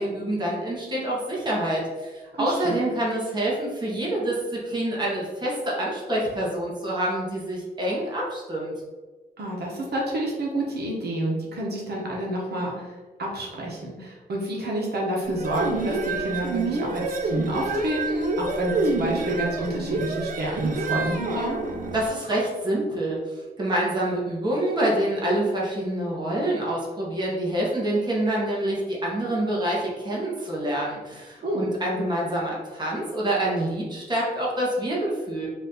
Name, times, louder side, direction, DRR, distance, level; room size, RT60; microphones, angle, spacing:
voice 1, 0.0-8.7 21.9-35.5, right 1 dB, 25° right, -4 dB, 1.2 m, -27 dB
voice 2, 2.3-2.8 9.4-12.9 13.2-21.6 31.4-31.7, right 1 dB, 75° right, -3 dB, 1.0 m, -29 dB
sound 1, 15.3-22.1, right 3 dB, 55° right, 0.6 m, -28 dB
4.1 x 2.6 x 4.0 m, 1.3 s
wide cardioid pair, 130°, 17 cm